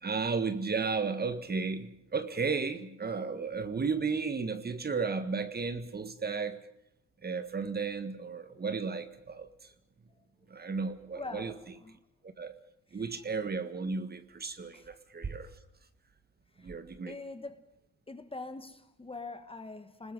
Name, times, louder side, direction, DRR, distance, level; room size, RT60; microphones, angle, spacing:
voice 1, 0.0-6.6 7.2-9.5 10.5-11.5 12.4-12.5 12.9-15.5 16.6-17.1, right 4 dB, 30° right, 1.7 m, -34 dB
voice 2, 11.1-12.0 12.9-13.1 14.7-14.9 16.6-16.7 17.1-17.7 18.1-20.1, left 3 dB, 20° left, 1.6 m, -43 dB
30.0 x 20.5 x 5.6 m
cardioid pair, 90°, 30 cm